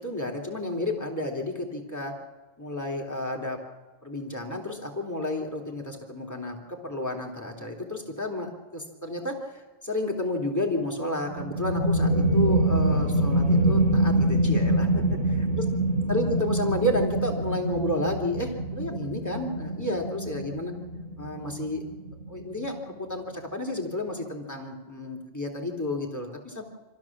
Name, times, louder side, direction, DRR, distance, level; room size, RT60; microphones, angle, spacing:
voice 1, 0.0-2.1 2.6-3.6 4.0-15.6 16.1-20.7 21.2-21.8 22.3-26.6, left 1 dB, 15° left, 2 dB, 3.2 m, -31 dB
sound 1, 11.3-22.6, right 1 dB, 75° right, 4.7 m, -25 dB
26.0 x 15.0 x 7.4 m, 1.2 s
omnidirectional pair, 1.3 m